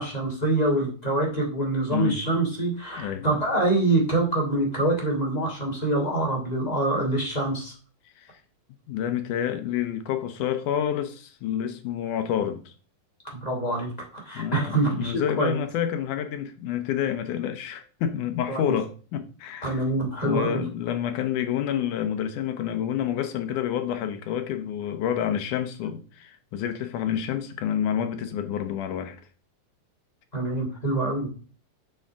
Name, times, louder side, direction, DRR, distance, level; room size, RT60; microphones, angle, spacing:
voice 1, 0.0-7.7 13.3-15.6 18.5-18.7 19.6-20.6 30.3-31.3, right 2 dB, 10° left, 2.5 m, -25 dB
voice 2, 8.9-12.7 14.3-19.8 20.2-29.2, left 9 dB, 75° left, 2.1 m, -28 dB
7.9 x 7.1 x 3.6 m
omnidirectional pair, 4.0 m